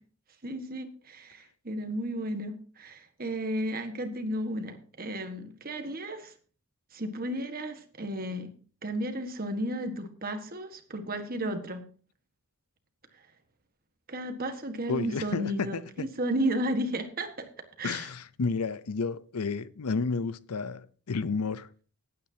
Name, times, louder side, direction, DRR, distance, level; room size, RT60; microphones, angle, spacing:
voice 1, 0.4-6.3 6.9-8.5 8.8-11.8 14.1-17.5 17.8-18.1, right 1 dB, 40° right, 1.5 m, -33 dB
voice 2, 14.9-16.1 17.8-21.7, left 4 dB, 85° left, 0.6 m, -31 dB
16.5 x 8.9 x 2.8 m
head